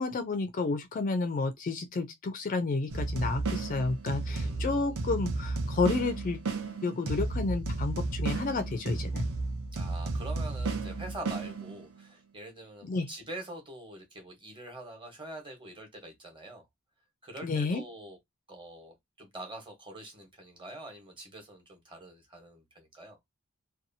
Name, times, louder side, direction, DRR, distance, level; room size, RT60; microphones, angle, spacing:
voice 1, 0.0-6.4 6.8-9.3 12.9-13.1 17.4-17.8, left 3 dB, 40° left, 0.4 m, -31 dB
sound 1, 2.9-12.0, right 3 dB, 70° right, 0.7 m, -33 dB
voice 2, 4.2-5.0 9.7-16.7 17.2-18.2 18.5-23.2, right 1 dB, 25° right, 1.0 m, -45 dB
2.7 x 2.3 x 2.6 m
head